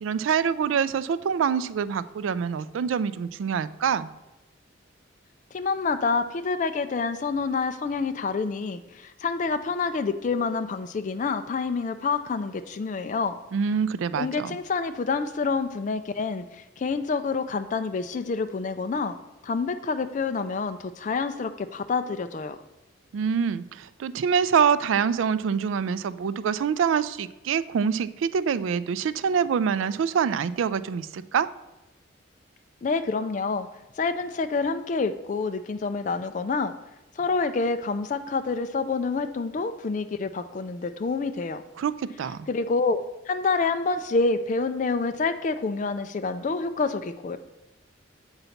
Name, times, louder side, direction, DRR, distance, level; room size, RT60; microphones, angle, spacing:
voice 1, 0.0-4.1 13.5-14.6 23.1-31.5 41.8-42.5, right 7 dB, 80° right, 16 dB, 0.3 m, -25 dB
voice 2, 5.5-13.3 14.2-19.2 19.4-22.6 32.8-33.7 34.0-36.7 37.2-41.6 42.5-43.0 43.3-47.4, left 4 dB, 40° left, 9 dB, 0.3 m, -27 dB
7.9 x 4.0 x 5.7 m, 1.0 s
head